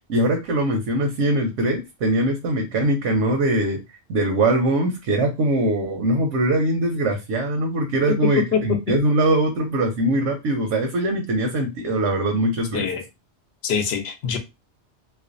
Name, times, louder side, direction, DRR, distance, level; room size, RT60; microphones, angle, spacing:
voice 1, 0.0-3.8 4.1-12.9, right 1 dB, 90° right, 3 dB, 0.9 m, -22 dB
voice 2, 12.7-13.0 13.6-14.4, left 7 dB, 70° left, 7 dB, 0.8 m, -24 dB
2.4 x 2.1 x 2.5 m, 0.23 s
omnidirectional pair, 1.2 m